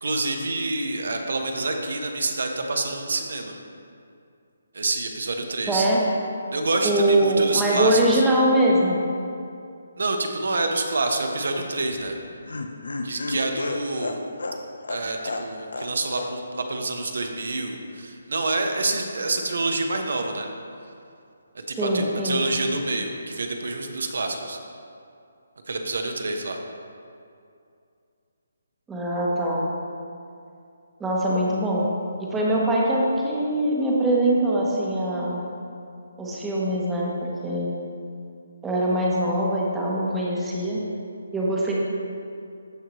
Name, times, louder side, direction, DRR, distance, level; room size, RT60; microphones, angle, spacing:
voice 1, 0.0-3.5 4.7-5.9 6.5-8.2 10.0-12.1 13.0-14.2 14.9-20.5 21.5-24.6 25.7-26.6, right 2 dB, 70° right, 4 dB, 1.0 m, -27 dB
voice 2, 5.7-6.0 6.8-9.0 21.8-22.4 28.9-29.6 31.0-31.9 32.2-35.4 36.2-37.7 38.6-40.8 41.3-41.7, right 1 dB, 5° right, -5 dB, 0.9 m, -22 dB
Laughter, 11.9-15.9 16.2-16.3 16.6-16.7, left 2 dB, 85° left, 0.7 m, -32 dB
13.5 x 4.6 x 3.1 m, 2.5 s
hypercardioid pair, 170°, 0 cm